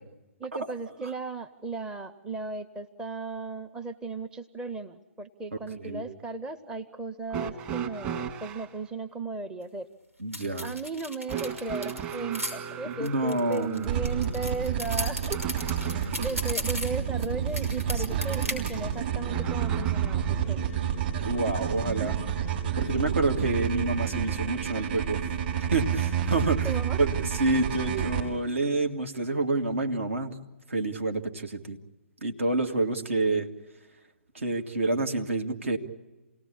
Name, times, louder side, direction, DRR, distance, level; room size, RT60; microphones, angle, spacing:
voice 1, 0.4-9.9 10.6-15.4 15.9-20.2 20.5-20.7 26.6-27.0, right 3 dB, 10° right, 8 dB, 0.8 m, -36 dB
sound 1, 7.3-8.7 11.3-16.4 19.3-20.4 21.6-21.7 22.8-22.9, right 8 dB, 25° right, 2.1 m, -36 dB
voice 2, 10.2-10.7 13.0-14.0 18.1-18.2 21.2-22.2 22.8-25.2 25.7-26.7 27.0-30.3 30.7-31.8 32.2-33.5 34.3-35.8, right 2 dB, 70° right, 4 dB, 2.5 m, -28 dB
sound 2, 10.3-12.5 13.0-17.3 17.5-18.7, left 1 dB, 90° right, 5.7 m, -35 dB
sound 3, 13.8-28.2, right 8 dB, 40° right, 5.6 m, -29 dB
28.5 x 18.5 x 8.6 m, 1.1 s
figure-of-eight pair, 130°, 7 cm